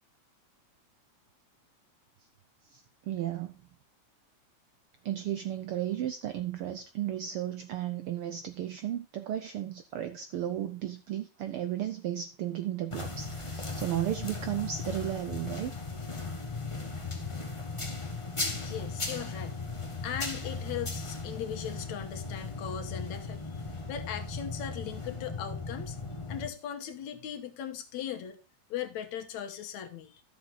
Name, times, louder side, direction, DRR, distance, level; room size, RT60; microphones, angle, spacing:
voice 1, 2.6-3.6 5.0-15.7, right 11 dB, 80° right, 1.2 m, -34 dB
sound 1, 12.9-26.5, left 3 dB, 35° left, 0.5 m, -37 dB
voice 2, 18.6-19.6 20.0-23.6 23.9-26.0 26.3-28.4 28.7-30.2, left 9 dB, 75° left, 2.5 m, -38 dB
12.5 x 7.1 x 3.9 m
omnidirectional pair, 3.3 m